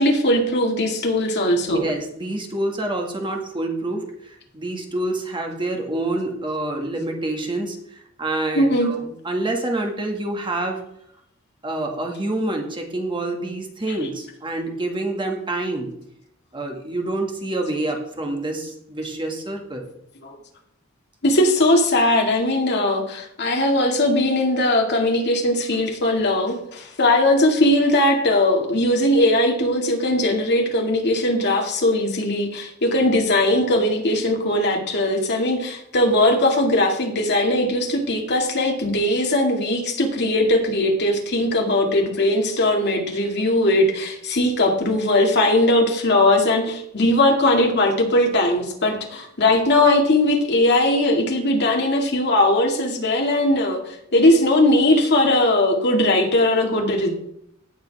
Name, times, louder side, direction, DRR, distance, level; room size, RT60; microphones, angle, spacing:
voice 1, 0.0-1.8 8.5-8.9 13.9-14.0 20.2-20.4 21.2-53.8 54.1-57.2, left 1 dB, 55° left, 2 dB, 2.0 m, -19 dB
voice 2, 1.6-10.8 11.6-15.9 16.5-19.8, right 2 dB, 25° right, 2 dB, 1.8 m, -27 dB
17.0 x 6.6 x 3.4 m, 0.73 s
head